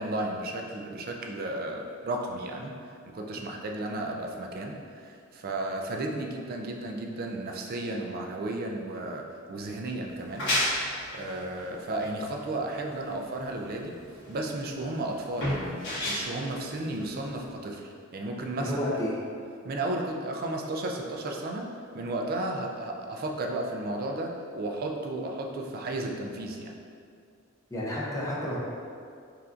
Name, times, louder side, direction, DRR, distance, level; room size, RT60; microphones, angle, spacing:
voice 1, 0.0-2.7 3.1-10.8 11.1-14.0 14.3-18.8 19.6-21.7 21.9-26.7, right 2 dB, 45° right, 1 dB, 0.4 m, -34 dB
sound 1, 10.1-17.5, left 1 dB, 60° left, 1.3 m, -33 dB
voice 2, 18.6-19.2 27.7-28.6, left 1 dB, 15° left, -5 dB, 0.6 m, -30 dB
5.6 x 2.5 x 2.4 m, 2.3 s
head